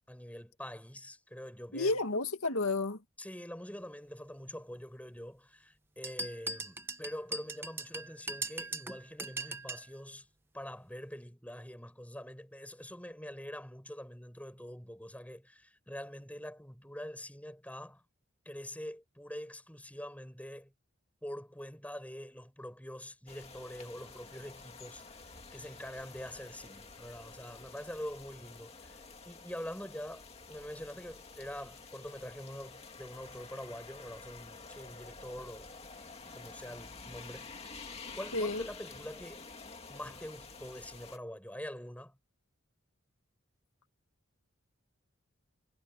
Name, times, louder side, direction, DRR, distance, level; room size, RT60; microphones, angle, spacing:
voice 1, 0.1-2.0 3.2-10.3 10.5-18.0 18.5-20.7 21.2-25.2 25.5-35.7 36.3-37.8 38.1-39.5 39.9-42.2, equal, 5° left, 7.5 m, -45 dB
voice 2, 1.7-3.0 38.3-38.6, left 3 dB, 85° left, 2.2 m, -31 dB
sound 1, 6.0-9.9, right 2 dB, 10° right, 1.0 m, -40 dB
sound 2, 23.3-41.2, left 4 dB, 30° left, 2.5 m, -50 dB
head